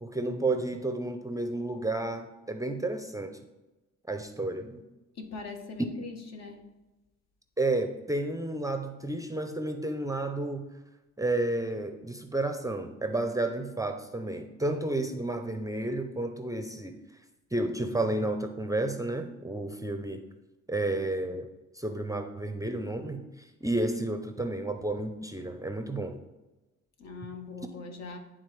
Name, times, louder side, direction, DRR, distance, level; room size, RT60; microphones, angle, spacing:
voice 1, 0.0-3.3 4.1-4.8 7.6-10.7 11.2-17.0 17.5-20.2 20.7-23.2 23.6-26.1, right 2 dB, 10° right, 6 dB, 0.5 m, -31 dB
voice 2, 5.1-6.8 27.0-28.2, left 4 dB, 60° left, 5 dB, 1.1 m, -41 dB
10.5 x 3.7 x 3.2 m, 1.1 s
cardioid pair, 90°, 30 cm